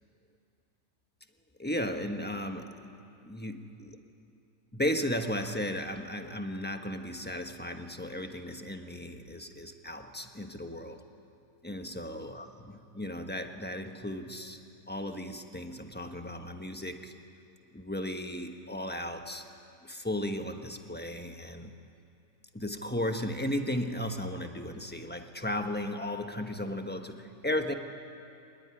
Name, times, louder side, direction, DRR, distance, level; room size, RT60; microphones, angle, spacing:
voice 1, 1.6-2.8 3.2-4.0 4.7-11.0 11.6-14.6 14.9-17.1 17.7-19.4 19.8-21.7 22.5-27.7, left 1 dB, 5° left, 5 dB, 1.2 m, -35 dB
25.0 x 21.5 x 9.9 m, 2.7 s
omnidirectional pair, 1.7 m